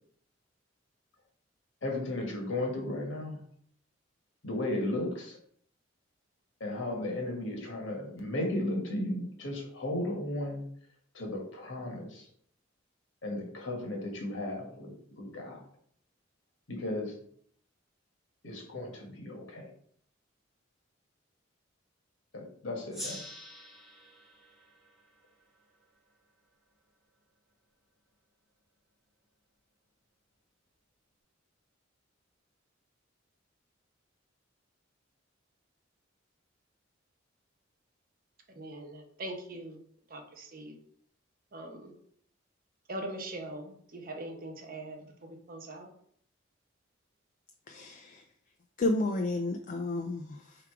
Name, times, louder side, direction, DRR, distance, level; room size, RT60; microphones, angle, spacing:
voice 1, 1.8-3.4 4.4-5.4 6.6-10.6 11.1-12.3 13.2-15.6 16.7-17.1 18.4-19.7 22.3-23.2, left 1 dB, 70° left, 1 dB, 1.3 m, -35 dB
Gong, 22.9-26.1, equal, ahead, 1.0 m, -46 dB
voice 2, 38.6-39.8 40.1-40.8 41.5-41.9 42.9-45.9, right 1 dB, 45° right, 3 dB, 0.8 m, -42 dB
voice 3, 47.7-48.2 48.8-50.6, left 2 dB, 40° left, 4 dB, 0.4 m, -31 dB
3.5 x 3.3 x 4.6 m, 0.63 s
head